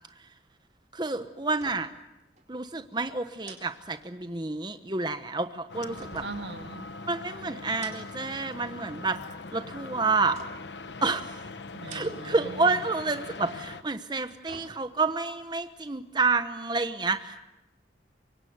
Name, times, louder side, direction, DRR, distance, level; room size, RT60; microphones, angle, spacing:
voice 1, 0.9-1.9 2.5-6.2 7.0-9.2 9.5-10.4 11.0-11.5 11.9-17.4, right 3 dB, 25° right, 9 dB, 1.1 m, -29 dB
sound 1, 1.6-2.1 2.4-2.5 3.4-4.5 6.0-7.1 7.6-8.4 8.7-9.3 10.3-10.9 11.7-12.5 12.8-12.9 14.0-15.2 15.6-15.7, right 4 dB, 40° right, 4.0 m, -49 dB
sound 2, 5.7-13.8, left 3 dB, 85° left, 1.2 m, -41 dB
voice 2, 6.2-6.9 11.7-12.8, right 3 dB, 80° right, 7 dB, 2.1 m, -40 dB
25.5 x 23.5 x 9.5 m, 0.94 s
head